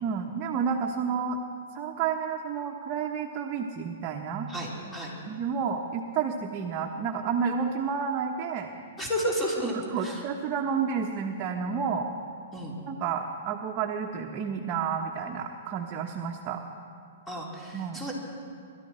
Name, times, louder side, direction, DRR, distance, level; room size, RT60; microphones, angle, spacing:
voice 1, 0.0-1.4 1.7-4.5 5.2-8.7 9.7-12.1 12.9-16.6 17.7-18.0, right 6 dB, 35° right, 1 dB, 1.2 m, -30 dB
voice 2, 4.5-5.1 9.0-10.2 12.5-12.7 17.3-18.1, equal, 10° left, -3 dB, 3.6 m, -32 dB
24.5 x 13.0 x 4.4 m, 2.3 s
hypercardioid pair, 130°, 0 cm